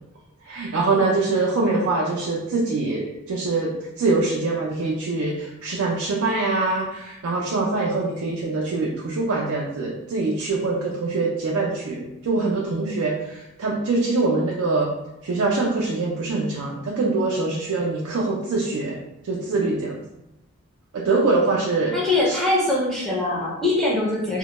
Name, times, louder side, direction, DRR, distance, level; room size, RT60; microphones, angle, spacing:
voice 1, 0.4-14.9 15.2-19.0 19.2-20.0 20.9-22.0 22.3-22.4, right 3 dB, 65° right, -2 dB, 0.3 m, -24 dB
voice 2, 21.9-24.4, left 2 dB, ahead, -6 dB, 0.5 m, -22 dB
2.1 x 2.1 x 2.9 m, 0.92 s
head